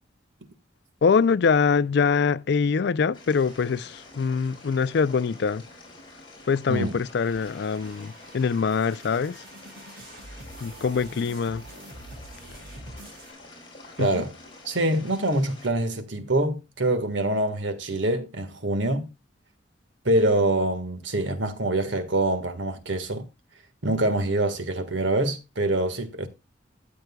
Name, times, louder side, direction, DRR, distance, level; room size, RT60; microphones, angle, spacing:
voice 1, 1.0-5.6 6.5-9.4 10.6-11.6 14.0-14.2, left 5 dB, 65° left, 0.4 m, -24 dB
sound 1, 3.1-15.7, left 2 dB, 25° left, 5.0 m, -48 dB
sound 2, 7.2-13.3, right 1 dB, 55° right, 5.7 m, -46 dB
voice 2, 14.0-14.3 14.6-19.1 20.0-23.2 23.8-26.3, right 1 dB, 80° right, 1.6 m, -25 dB
13.5 x 7.9 x 2.3 m
head